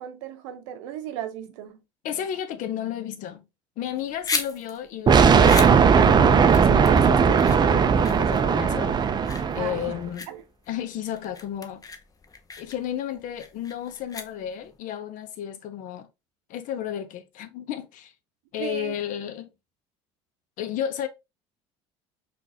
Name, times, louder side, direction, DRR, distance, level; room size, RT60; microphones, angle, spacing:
voice 1, 0.0-1.8 9.6-9.9 10.3-10.4 18.6-18.9, right 11 dB, 85° right, 0.7 m, -36 dB
voice 2, 2.0-3.4 3.8-9.1 9.5-10.3 10.7-11.8 12.6-16.1 16.5-18.1 18.5-19.5 20.6-21.1, left 10 dB, 60° left, 0.7 m, -33 dB
sound 1, 3.8-14.8, left 4 dB, 25° left, 0.6 m, -37 dB
sound 2, 5.1-9.9, right 6 dB, 30° right, 0.4 m, -18 dB
3.8 x 2.5 x 2.8 m
supercardioid pair, 85°, 15 cm